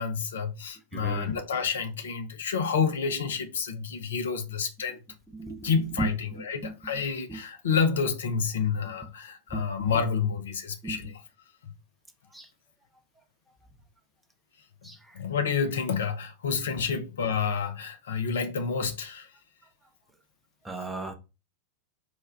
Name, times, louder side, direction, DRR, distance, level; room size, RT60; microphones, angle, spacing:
voice 1, 0.0-5.0 5.6-11.2 15.1-19.3, left 6 dB, 65° left, 0.6 m, -29 dB
voice 2, 0.9-1.3 5.3-5.7 6.0-6.7 7.3-7.4 9.5-10.0 10.8-11.0 12.3-12.5 14.8-15.0 20.6-21.2, right 2 dB, 5° right, 0.7 m, -35 dB
4.5 x 2.2 x 3.3 m
figure-of-eight pair, 90°, 0 cm